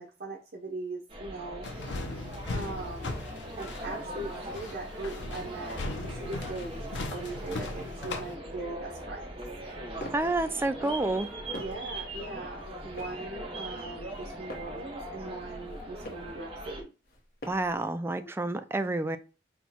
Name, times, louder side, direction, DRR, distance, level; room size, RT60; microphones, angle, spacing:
voice 1, 0.0-1.7 2.5-3.2 3.6-9.4 10.8-11.1 11.5-16.9 17.7-17.8 18.2-18.3, right 2 dB, 60° right, 0.9 m, -40 dB
sound 1, 1.1-16.8, right 1 dB, 30° right, 1.1 m, -40 dB
sound 2, 1.6-8.3, left 2 dB, 85° left, 0.8 m, -38 dB
sound 3, 9.6-10.4 11.1-11.9 12.6-13.3 14.0-14.8 15.6-16.4 17.0-17.8, equal, 55° left, 1.1 m, -46 dB
voice 2, 10.1-11.3 17.5-19.2, right 2 dB, 15° right, 0.4 m, -29 dB
4.4 x 2.3 x 4.1 m
head